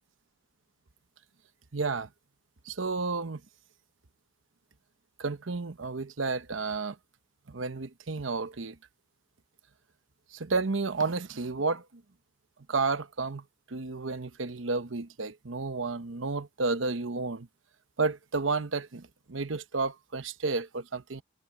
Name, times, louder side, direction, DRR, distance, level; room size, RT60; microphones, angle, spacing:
voice 1, 1.7-2.1 2.6-3.4 5.2-7.0 7.5-8.8 10.3-12.0 12.7-17.5 18.0-21.2, right 3 dB, 85° right, 1.0 m, -31 dB
head